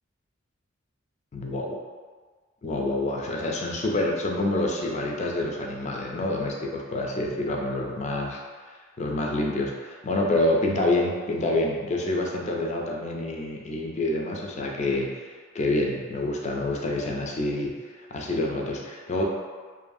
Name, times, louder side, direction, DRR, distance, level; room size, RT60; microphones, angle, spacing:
voice 1, 1.3-1.7 2.6-8.4 9.0-15.3 15.5-19.2, left 2 dB, 35° left, -1 dB, 0.3 m, -27 dB
2.5 x 2.3 x 2.5 m, 1.5 s
head